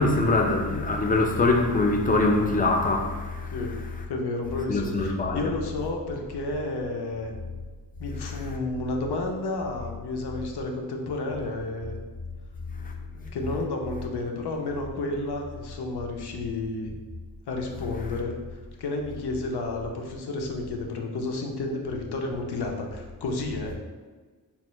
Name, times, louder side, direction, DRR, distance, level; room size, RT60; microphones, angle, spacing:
voice 1, 0.0-3.5 4.7-5.4, left 2 dB, 25° left, 0.4 m, -23 dB
voice 2, 3.5-3.8 4.1-7.3 8.0-12.0 13.1-16.9 17.5-23.8, left 2 dB, 85° left, 0.6 m, -31 dB
4.2 x 2.0 x 3.0 m
wide cardioid pair, 80°, 38 cm